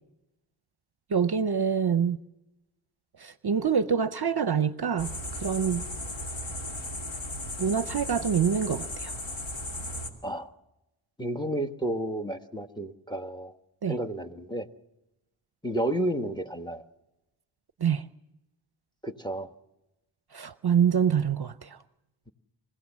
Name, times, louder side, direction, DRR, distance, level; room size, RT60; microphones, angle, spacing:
voice 1, 1.1-2.2 3.2-5.8 7.6-9.1 13.8-13.9 17.8-18.0 20.3-21.8, right 7 dB, 50° right, 0.7 m, -26 dB
sound 1, 5.0-10.1, left 1 dB, 65° left, 2.6 m, -36 dB
voice 2, 11.2-13.5 13.9-14.7 15.6-16.8 19.0-19.5, right 1 dB, 10° left, 1.1 m, -31 dB
27.0 x 16.0 x 7.3 m
wide cardioid pair, 60°, 49 cm